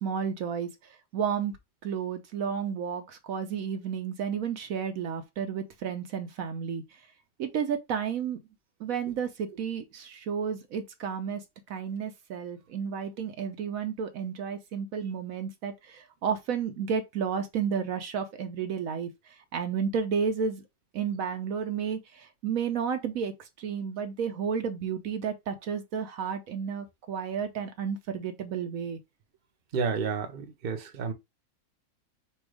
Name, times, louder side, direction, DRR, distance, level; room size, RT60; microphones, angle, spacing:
voice 1, 0.0-1.6 1.8-7.0 7.4-8.4 8.8-20.6 20.9-29.0, right 7 dB, 70° right, 1.1 m, -32 dB
voice 2, 29.7-31.1, right 5 dB, 45° right, 0.9 m, -30 dB
4.3 x 2.4 x 4.8 m
omnidirectional pair, 1.5 m